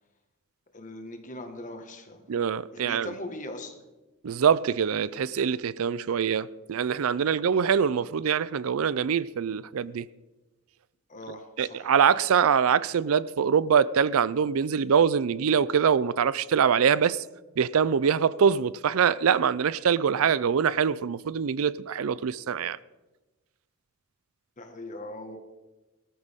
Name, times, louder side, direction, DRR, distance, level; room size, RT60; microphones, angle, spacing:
voice 1, 0.7-2.2 2.7-3.7 7.3-7.4 11.1-11.9 24.6-25.4, left 1 dB, 35° left, 1.6 m, -40 dB
voice 2, 2.3-3.1 4.2-10.1 11.6-17.2 17.6-22.8, right 7 dB, 75° right, 0.4 m, -24 dB
18.5 x 13.5 x 3.6 m
head